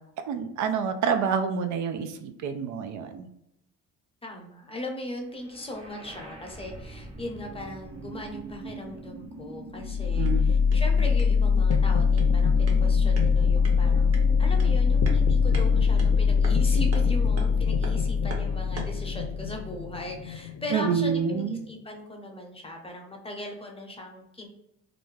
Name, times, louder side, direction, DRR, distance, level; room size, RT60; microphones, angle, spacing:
voice 1, 0.3-3.3 10.1-10.5 20.7-21.6, right 6 dB, 75° right, 7 dB, 0.5 m, -27 dB
voice 2, 4.2-24.5, left 1 dB, 20° left, 1 dB, 0.7 m, -38 dB
sound 1, 5.4-19.4, right 1 dB, 20° right, 0.6 m, -42 dB
sound 2, 9.8-21.7, left 5 dB, 85° left, 0.5 m, -23 dB
sound 3, 10.0-19.1, right 3 dB, 50° right, 0.8 m, -45 dB
2.5 x 2.2 x 3.1 m, 0.81 s
cardioid pair, 90°, 30 cm